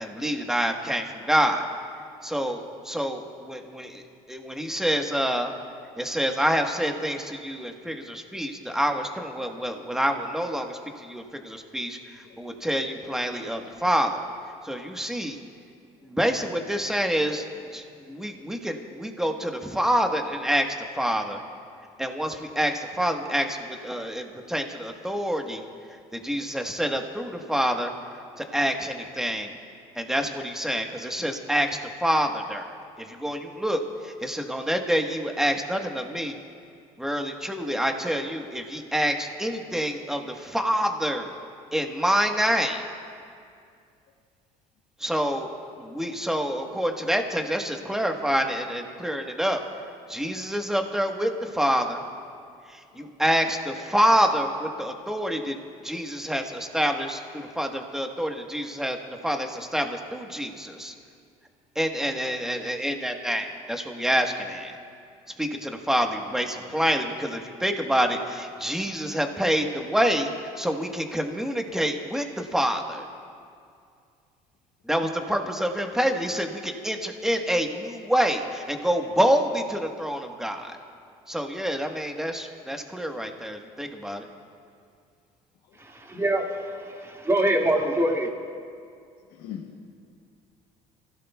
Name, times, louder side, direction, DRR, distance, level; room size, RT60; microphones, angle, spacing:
voice 1, 0.0-1.6 2.2-4.0 4.3-5.5 6.0-14.2 14.6-15.4 16.0-17.4 17.7-21.4 22.0-25.6 26.1-27.9 28.4-29.5 29.9-36.4 37.0-41.3 41.7-42.8 45.0-45.5 45.8-49.6 50.1-52.0 52.7-55.5 55.8-59.0 59.2-60.9 61.7-64.8 65.4-70.3 70.6-73.1 74.9-80.7 81.3-84.2, equal, 5° right, 3 dB, 1.3 m, -27 dB
voice 2, 85.8-86.5 86.8-88.3, right 1 dB, 20° right, 0 dB, 2.2 m, -24 dB
voice 3, 89.3-89.9, left 9 dB, 80° left, 0 dB, 1.1 m, -41 dB
28.5 x 16.0 x 2.3 m, 2.3 s
supercardioid pair, 90°, 14 cm